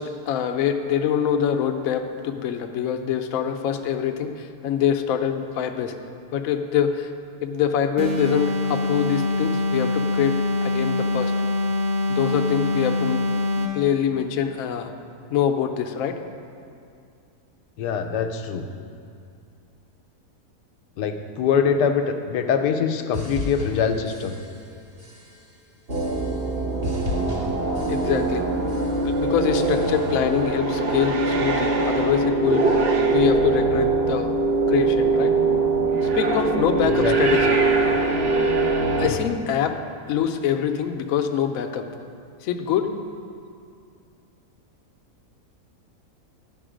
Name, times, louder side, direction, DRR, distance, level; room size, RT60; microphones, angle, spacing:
voice 1, 0.0-5.9 6.3-7.1 7.4-11.3 12.1-13.2 13.7-14.9 15.3-16.2 27.9-28.4 29.0-32.8 33.1-34.3 34.7-35.3 36.1-37.5 39.0-39.8 40.1-41.9 42.4-42.9, left 8 dB, 70° left, 6 dB, 0.9 m, -24 dB
sound 1, 8.0-13.9, left 2 dB, 75° right, 1.4 m, -24 dB
voice 2, 17.8-18.7 21.0-24.4 36.8-37.4 39.1-39.2, left 6 dB, 85° left, 7 dB, 1.2 m, -24 dB
sound 2, 23.1-24.7 25.0-25.5 25.9-26.5 26.8-28.4 28.7-29.2 29.6-30.2, left 2 dB, 20° right, 1.3 m, -35 dB
sound 3, 25.9-39.1, right 3 dB, 50° right, 0.8 m, -22 dB
11.5 x 5.3 x 5.0 m, 2.5 s
omnidirectional pair, 1.7 m